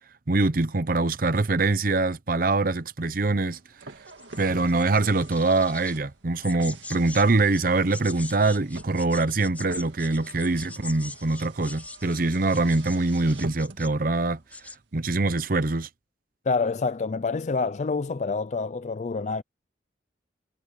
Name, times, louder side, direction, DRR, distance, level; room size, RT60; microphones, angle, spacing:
voice 1, 0.3-3.6 4.4-14.4 14.9-15.9, right 3 dB, 50° right, 0.8 m, -24 dB
Car, 3.3-14.0, right 3 dB, 85° right, 2.1 m, -46 dB
sound 1, 4.1-6.0 6.4-7.3 7.5-14.0 14.3-14.8, left 2 dB, 10° left, 3.1 m, -42 dB
voice 2, 16.5-19.4, left 4 dB, 40° left, 0.4 m, -27 dB
head